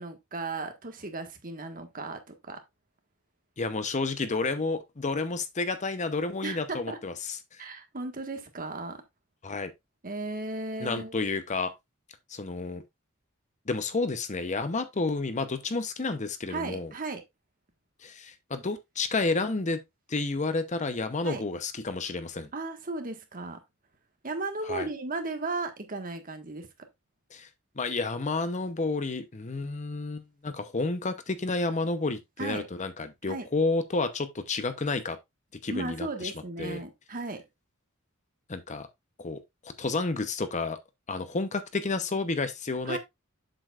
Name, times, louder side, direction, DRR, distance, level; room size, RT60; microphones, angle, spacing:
voice 1, 0.0-2.6 6.4-7.0 7.6-9.0 10.0-11.1 16.5-17.2 21.2-21.4 22.5-23.6 24.2-26.7 32.4-32.7 33.2-33.5 35.7-37.4 42.8-43.0, right 3 dB, 40° right, 1.6 m, -35 dB
voice 2, 3.6-7.7 9.4-9.7 10.8-11.7 12.3-12.8 13.7-16.9 18.0-19.8 20.1-22.5 24.7-24.9 27.3-27.5 27.8-35.2 35.6-36.3 36.6-36.8 38.5-38.9 39.2-40.8 41.1-43.0, left 3 dB, 35° left, 0.8 m, -30 dB
7.7 x 7.0 x 2.4 m
head